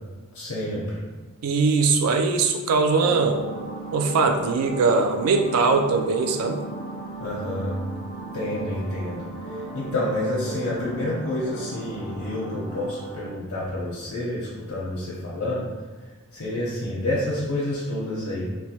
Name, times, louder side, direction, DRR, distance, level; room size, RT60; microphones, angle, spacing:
voice 1, 0.3-1.0 7.2-7.8 8.3-15.7 16.0-18.5, left 1 dB, 70° left, -7 dB, 0.6 m, -29 dB
voice 2, 1.4-3.4 3.9-6.6, right 4 dB, 85° right, 5 dB, 0.3 m, -21 dB
sound 1, 3.0-13.2, right 2 dB, ahead, 0.7 m, -36 dB
3.0 x 2.2 x 2.8 m, 1.3 s
head